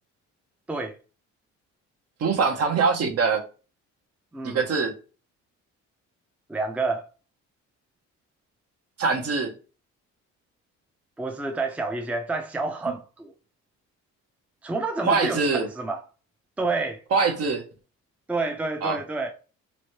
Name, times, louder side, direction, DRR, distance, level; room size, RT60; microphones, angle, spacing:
voice 1, 2.2-3.4 4.4-5.0 9.0-9.5 12.9-13.0 15.0-15.7 17.1-17.6 18.8-19.0, right 4 dB, 55° right, 0.7 m, -23 dB
voice 2, 4.3-4.6 6.5-7.0 11.2-13.3 14.6-16.0 16.6-17.0 18.3-19.3, right 3 dB, 5° right, 0.4 m, -29 dB
3.1 x 2.1 x 2.8 m
cardioid pair, 90°, 30 cm